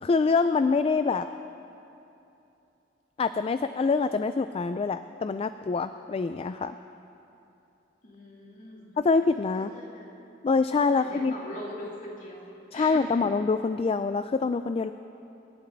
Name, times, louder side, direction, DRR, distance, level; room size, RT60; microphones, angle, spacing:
voice 1, 0.0-1.3 3.2-6.8 9.0-9.7 10.4-11.3 12.7-14.9, left 4 dB, 30° left, 11 dB, 0.3 m, -25 dB
voice 2, 8.0-8.9 9.5-10.1 10.9-12.5 12.7-13.2, left 1 dB, 45° left, -4 dB, 3.1 m, -42 dB
26.0 x 11.5 x 4.0 m, 2.9 s
head